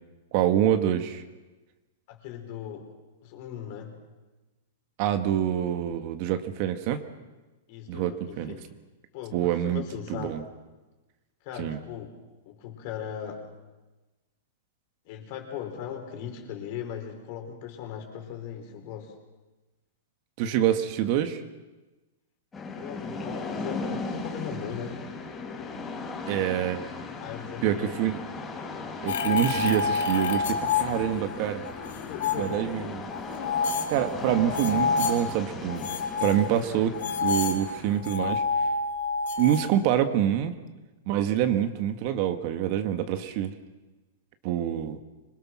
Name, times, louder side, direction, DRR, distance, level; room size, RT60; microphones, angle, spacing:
voice 1, 0.3-1.2 5.0-7.0 7.9-8.5 9.3-9.8 10.1-10.4 11.6-11.8 20.4-21.4 26.3-26.8 27.6-28.2 29.0-31.6 32.4-33.0 33.9-35.8 36.2-38.4 39.4-40.5 41.1-43.5 44.4-45.0, right 10 dB, 45° right, 8 dB, 1.7 m, -26 dB
voice 2, 2.1-2.9 3.2-4.0 7.7-8.6 9.1-10.4 11.4-12.2 12.4-13.4 15.0-19.1 22.8-25.0 27.2-27.9 31.9-33.0 36.6-36.8, left 8 dB, 50° left, 4 dB, 4.9 m, -38 dB
sound 1, 22.5-38.0, left 3 dB, 15° left, 5.1 m, -37 dB
sound 2, 29.1-31.4 31.7-32.5 33.1-35.2 35.7-39.7, left 4 dB, 70° left, 2.3 m, -28 dB
25.5 x 21.5 x 6.2 m, 1.2 s
hypercardioid pair, 145°, 0 cm